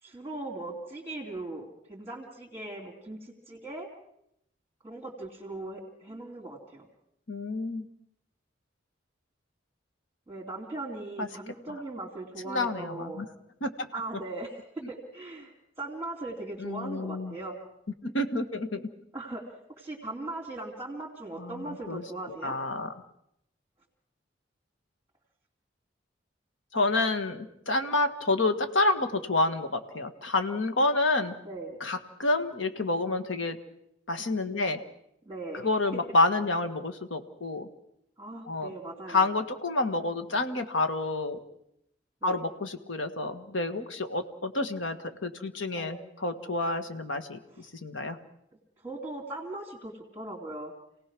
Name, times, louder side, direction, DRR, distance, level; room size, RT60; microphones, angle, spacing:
voice 1, 0.0-3.9 4.8-6.9 10.3-13.2 13.9-14.6 14.9-15.5 15.8-17.6 19.1-19.4 19.8-22.5 31.4-31.8 35.3-35.7 38.2-39.3 42.2-42.4 45.7-46.0 47.5-47.6 48.8-50.7, right 2 dB, 10° right, -4 dB, 2.8 m, -39 dB
voice 2, 7.3-7.9 11.2-11.3 12.4-13.3 13.6-13.9 16.6-17.3 18.0-18.8 21.4-22.0 22.4-22.9 26.7-31.3 31.8-33.6 34.1-34.8 35.5-37.7 38.4-38.7 39.1-41.4 42.2-48.2, left 2 dB, 80° left, 9 dB, 1.6 m, -29 dB
28.0 x 18.0 x 6.1 m, 0.78 s
head